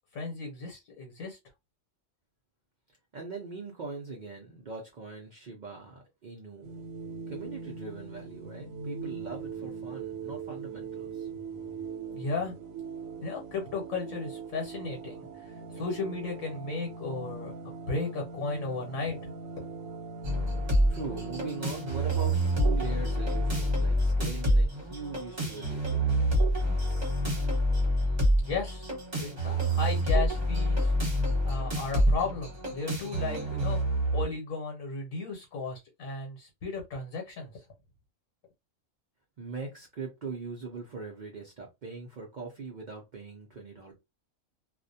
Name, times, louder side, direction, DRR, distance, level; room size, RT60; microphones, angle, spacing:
voice 1, 0.1-1.4 12.1-12.6 13.2-19.4 27.8-33.8 34.1-37.6, left 4 dB, 80° left, 1.2 m, -35 dB
voice 2, 3.1-6.9 7.3-11.3 20.9-26.3 39.4-43.9, right 4 dB, 55° right, 0.5 m, -41 dB
sound 1, 6.6-23.7, right 5 dB, 90° right, 1.1 m, -41 dB
sound 2, 20.2-34.2, equal, 35° right, 1.0 m, -27 dB
2.4 x 2.1 x 2.6 m
omnidirectional pair, 1.4 m